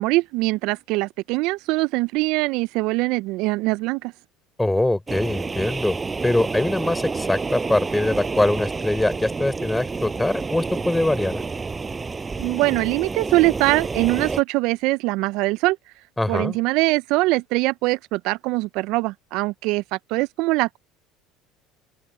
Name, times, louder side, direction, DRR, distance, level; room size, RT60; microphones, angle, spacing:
voice 1, 0.0-4.1 12.4-15.8 16.3-20.8, right 22 dB, 65° right, 0.7 m, -22 dB
voice 2, 4.6-6.0 6.2-11.4 16.2-16.6, left 1 dB, 10° left, 5.5 m, -23 dB
sound 1, 5.1-14.4, right 4 dB, 25° right, 7.2 m, -29 dB
open air
hypercardioid pair, 70°, 0 cm